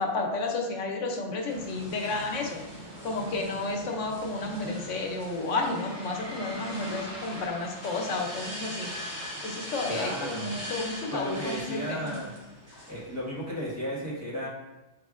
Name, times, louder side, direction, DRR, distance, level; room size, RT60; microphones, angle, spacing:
voice 1, 0.0-2.6 3.0-8.9 9.4-12.2, left 3 dB, 90° left, 1 dB, 1.1 m, -31 dB
sound 1, 1.5-13.5, equal, 75° right, 1.5 m, -41 dB
voice 2, 9.9-10.5 11.1-12.3 12.9-14.5, equal, 15° right, -9 dB, 1.4 m, -34 dB
5.5 x 3.2 x 2.4 m, 1.0 s
omnidirectional pair, 1.2 m